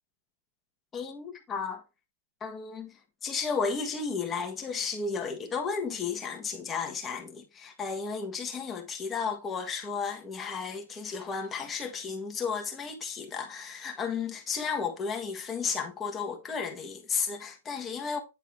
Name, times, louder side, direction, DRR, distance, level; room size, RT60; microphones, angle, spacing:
voice 1, 0.9-1.8 2.4-18.2, left 5 dB, 15° left, 1.4 m, -33 dB
9.4 x 4.0 x 3.4 m
hypercardioid pair, 160°, 0 cm